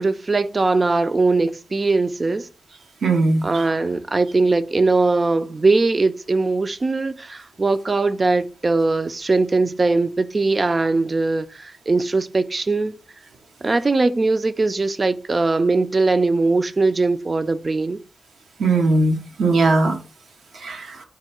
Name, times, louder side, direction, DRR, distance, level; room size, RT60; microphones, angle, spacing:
voice 1, 0.0-2.5 3.4-13.0 13.6-18.0, right 3 dB, 45° right, 0.4 m, -20 dB
voice 2, 3.0-3.4 18.6-20.0 20.6-21.0, right 3 dB, 85° right, 0.7 m, -19 dB
3.6 x 2.3 x 4.3 m
cardioid pair, 45°, 0 cm